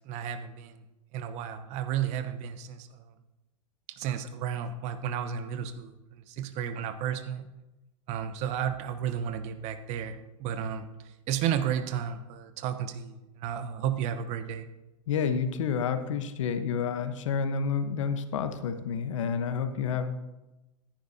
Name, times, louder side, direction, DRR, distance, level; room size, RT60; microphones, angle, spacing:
voice 1, 0.1-0.8 1.1-2.9 4.0-7.5 8.1-10.8 11.3-14.7, right 9 dB, 40° right, 10 dB, 0.9 m, -32 dB
voice 2, 15.1-20.1, left 6 dB, 65° left, 9 dB, 1.1 m, -29 dB
14.5 x 10.5 x 2.8 m, 1.0 s
hypercardioid pair, 100°, 17 cm